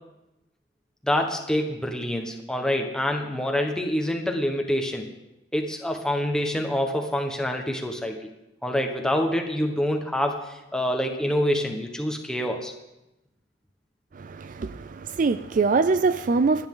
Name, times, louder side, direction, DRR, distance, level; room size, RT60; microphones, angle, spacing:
voice 1, 1.0-5.0 5.5-8.3 8.6-12.7, left 1 dB, 5° left, 2 dB, 1.3 m, -26 dB
voice 2, 14.2-16.7, right 4 dB, 45° right, 13 dB, 0.4 m, -23 dB
27.0 x 9.7 x 3.9 m, 0.94 s
head